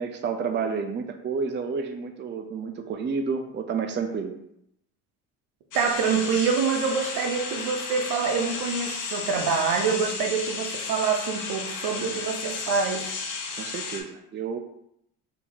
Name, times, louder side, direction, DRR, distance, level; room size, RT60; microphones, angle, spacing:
voice 1, 0.0-4.4 13.6-14.6, right 5 dB, 30° right, 5 dB, 0.5 m, -30 dB
sound 1, 5.7-14.0, left 4 dB, 55° left, 1.0 m, -33 dB
voice 2, 5.7-13.2, right 5 dB, 70° right, 4 dB, 0.8 m, -26 dB
3.5 x 2.9 x 4.2 m, 0.77 s
supercardioid pair, 70°, 37 cm